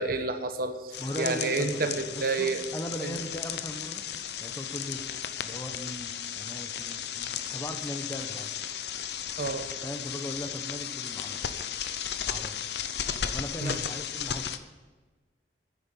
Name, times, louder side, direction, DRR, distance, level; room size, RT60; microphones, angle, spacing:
voice 1, 0.0-2.6 3.0-3.1 9.4-9.7 13.6-13.8, right 3 dB, 55° right, 7 dB, 1.1 m, -30 dB
sound 1, 0.9-14.6, left 8 dB, 65° left, 0.7 m, -35 dB
voice 2, 1.0-4.0 4.4-5.0 5.3-8.5 9.8-11.8 12.2-12.8 13.2-14.5, equal, 15° left, 6 dB, 1.0 m, -39 dB
9.9 x 9.4 x 8.4 m, 1.3 s
head